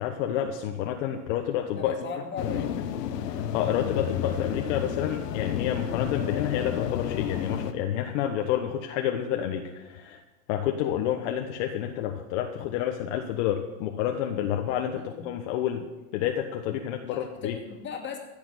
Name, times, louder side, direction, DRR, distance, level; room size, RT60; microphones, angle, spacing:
voice 1, 0.0-1.9 3.3-10.2 10.5-15.8 16.1-17.6, left 10 dB, 50° left, 4 dB, 1.3 m, -29 dB
voice 2, 1.8-2.8 14.9-15.3 17.1-18.2, left 6 dB, 25° left, 1 dB, 2.4 m, -38 dB
sound 1, 2.4-7.7, left 9 dB, 90° left, 1.4 m, -31 dB
16.0 x 7.0 x 9.9 m, 1.1 s
supercardioid pair, 150°, 47 cm